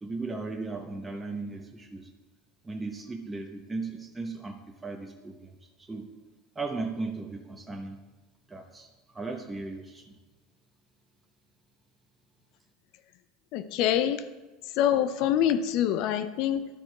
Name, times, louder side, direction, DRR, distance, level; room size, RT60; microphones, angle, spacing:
voice 1, 0.0-2.1 2.6-5.5 5.8-6.1 6.5-8.0 8.5-10.2, right 3 dB, 15° right, 3 dB, 1.0 m, -37 dB
voice 2, 13.5-14.2 14.8-16.7, left 10 dB, 60° left, 12 dB, 0.6 m, -25 dB
11.5 x 4.5 x 4.7 m, 1.2 s
hypercardioid pair, 85°, 0 cm